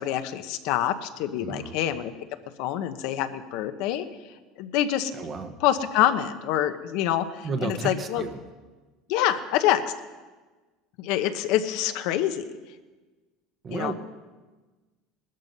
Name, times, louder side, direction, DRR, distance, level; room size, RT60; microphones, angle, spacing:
voice 1, 0.0-2.1 2.6-5.1 5.6-8.2 9.1-9.8 11.0-12.4 13.7-13.9, left 11 dB, 55° left, 9 dB, 0.9 m, -26 dB
voice 2, 1.3-1.8 5.1-5.6 7.4-8.4 13.6-13.9, right 4 dB, 25° right, 8 dB, 1.1 m, -32 dB
19.5 x 13.0 x 5.4 m, 1.3 s
cardioid pair, 170°, 0 cm